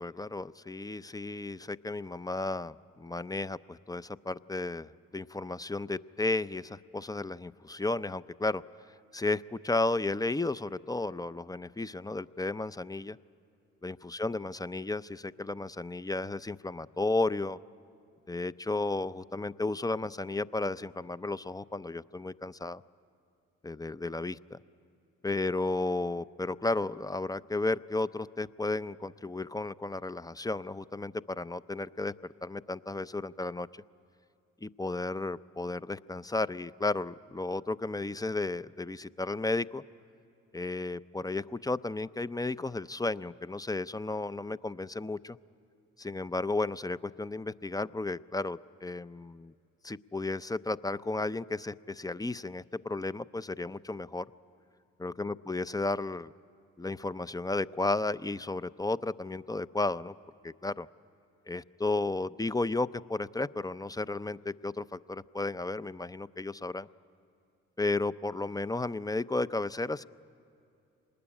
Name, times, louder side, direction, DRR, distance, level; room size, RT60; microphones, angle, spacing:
voice 1, 0.0-8.6 9.1-13.2 13.8-17.6 18.3-22.8 23.6-24.6 25.2-33.8 34.6-39.8 40.5-45.4 46.0-49.5 49.8-54.3 55.0-56.3 56.8-60.1 60.4-60.9 61.5-66.9 67.8-70.0, left 2 dB, 10° left, 16 dB, 0.5 m, -33 dB
25.0 x 20.5 x 9.9 m, 2.6 s
supercardioid pair, 60°, 34 cm